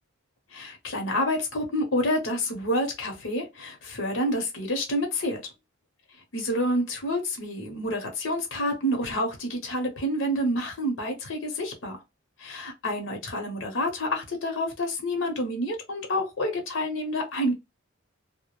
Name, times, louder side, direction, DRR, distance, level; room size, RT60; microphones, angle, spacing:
voice 1, 0.5-5.4 6.3-12.0 12.4-17.5, equal, 75° left, 0.8 m, -28 dB
2.3 x 2.0 x 3.0 m
head